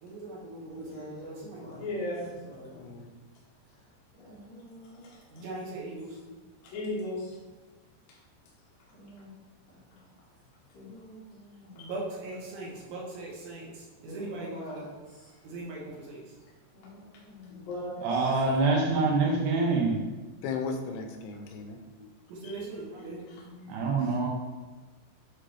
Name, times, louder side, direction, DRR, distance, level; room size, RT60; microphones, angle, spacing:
voice 1, 0.0-1.9 5.3-6.2 11.7-14.8 15.4-16.2 22.3-23.2, right 2 dB, 65° right, -4 dB, 2.9 m, -40 dB
voice 2, 0.7-1.8 2.5-2.9 4.2-5.2 6.3-6.4 8.9-9.3 9.9-10.0 10.7-11.8 14.0-15.3 16.7-17.7, equal, 45° left, -9 dB, 2.7 m, -47 dB
voice 3, 1.7-2.3 4.9-5.4 6.6-7.4 11.8-11.9 17.5-18.4 22.4-22.6 23.0-24.1, left 1 dB, 65° left, -7 dB, 2.8 m, -38 dB
voice 4, 2.6-3.1 20.4-22.1, left 5 dB, 85° left, 4 dB, 2.8 m, -36 dB
voice 5, 18.0-20.0 23.7-24.3, right 3 dB, 85° right, -1 dB, 3.2 m, -25 dB
8.9 x 3.7 x 3.4 m, 1.3 s
omnidirectional pair, 4.7 m